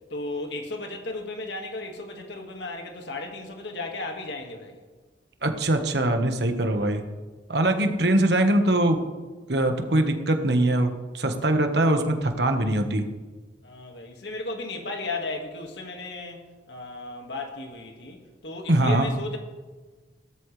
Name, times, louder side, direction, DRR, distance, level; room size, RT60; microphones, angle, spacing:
voice 1, 0.1-4.8 6.7-6.9 13.6-19.4, left 2 dB, 70° left, 2.0 m, -35 dB
voice 2, 5.4-7.1 7.5-9.0 9.5-13.1 18.7-19.1, right 1 dB, 65° right, 1.4 m, -22 dB
17.0 x 13.0 x 3.3 m
head